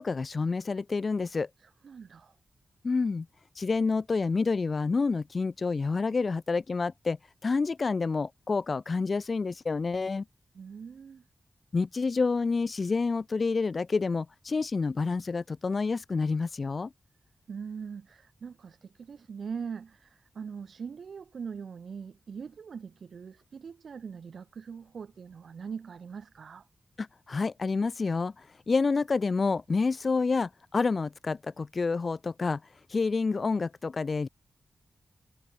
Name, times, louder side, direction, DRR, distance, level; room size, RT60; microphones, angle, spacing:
voice 1, 0.0-1.5 2.8-3.3 3.6-7.2 7.4-10.2 11.7-16.9 27.3-32.6 32.9-34.3, left 4 dB, 45° left, 0.4 m, -28 dB
voice 2, 1.6-2.4 10.5-11.3 17.5-26.7, right 6 dB, 75° right, 1.5 m, -42 dB
wide cardioid pair, 105°, 0 cm